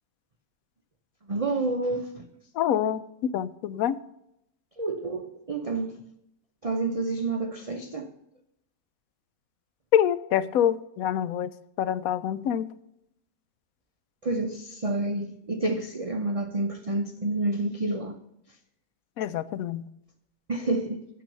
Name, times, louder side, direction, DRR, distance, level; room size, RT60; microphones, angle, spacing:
voice 1, 1.3-2.2 4.8-6.0 6.6-8.1 14.2-18.2 20.5-21.0, right 2 dB, 35° right, 0.6 m, -29 dB
voice 2, 2.6-4.0 9.9-11.5 11.8-12.6 19.2-19.8, left 10 dB, 75° left, 1.0 m, -26 dB
9.3 x 7.0 x 6.6 m
omnidirectional pair, 1.5 m